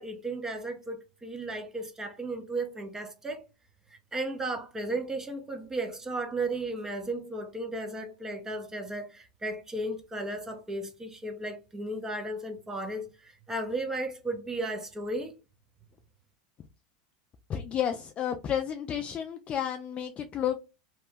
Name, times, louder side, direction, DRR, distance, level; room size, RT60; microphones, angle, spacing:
voice 1, 0.0-3.5 4.1-15.3, right 2 dB, 15° right, 0.8 m, -35 dB
voice 2, 17.5-20.6, left 9 dB, 30° left, 0.4 m, -31 dB
2.9 x 2.1 x 3.4 m
hypercardioid pair, 105°, 4 cm